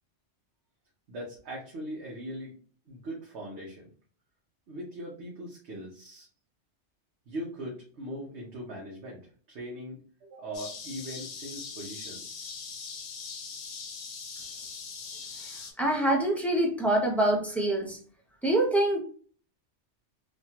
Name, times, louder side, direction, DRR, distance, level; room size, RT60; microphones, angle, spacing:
voice 1, 1.1-2.5 2.9-3.9 4.7-6.3 7.3-9.2 9.5-12.5, equal, 70° right, -3 dB, 1.1 m, -40 dB
sound 1, 10.5-15.7, left 5 dB, 80° left, 1.0 m, -41 dB
voice 2, 15.8-18.0 18.4-19.0, right 1 dB, ahead, -3 dB, 0.4 m, -25 dB
3.2 x 2.2 x 2.8 m, 0.43 s
omnidirectional pair, 1.2 m